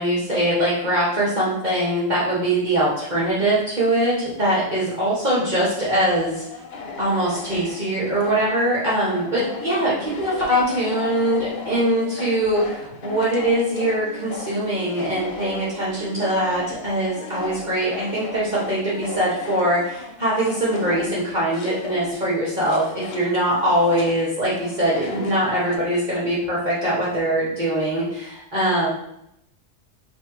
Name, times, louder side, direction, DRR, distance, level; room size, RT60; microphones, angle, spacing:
voice 1, 0.0-6.6 7.0-28.9, right 1 dB, 35° right, -9 dB, 1.4 m, -22 dB
sound 1, 6.3-8.5 9.0-22.2 22.5-25.8, left 4 dB, 55° left, 0.9 m, -37 dB
3.3 x 3.2 x 4.7 m, 0.78 s
omnidirectional pair, 1.3 m